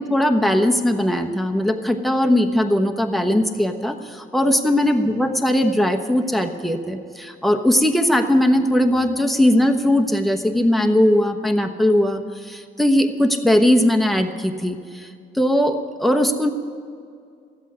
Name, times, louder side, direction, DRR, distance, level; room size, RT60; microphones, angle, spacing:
voice 1, 0.1-15.1 15.3-16.5, left 1 dB, ahead, 4 dB, 1.1 m, -19 dB
13.5 x 8.3 x 9.6 m, 2.3 s
cardioid pair, 90°, 20 cm